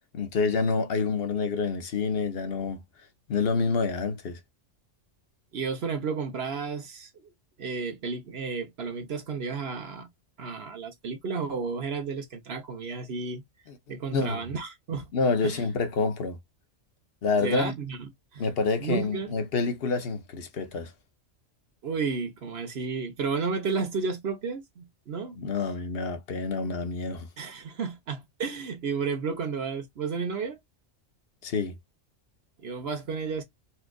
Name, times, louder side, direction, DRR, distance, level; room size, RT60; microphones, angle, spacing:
voice 1, 0.1-2.8 3.3-4.4 14.1-14.5 15.1-16.4 17.2-17.7 18.4-20.9 25.4-27.3 31.4-31.7, left 4 dB, 55° left, 1.0 m, -27 dB
voice 2, 5.5-7.3 7.6-10.1 10.4-13.4 13.9-15.1 15.4-15.7 17.4-18.4 18.8-19.3 21.8-25.4 27.4-30.6 32.6-33.4, right 5 dB, 55° right, 1.2 m, -32 dB
4.3 x 2.4 x 2.3 m
omnidirectional pair, 1.3 m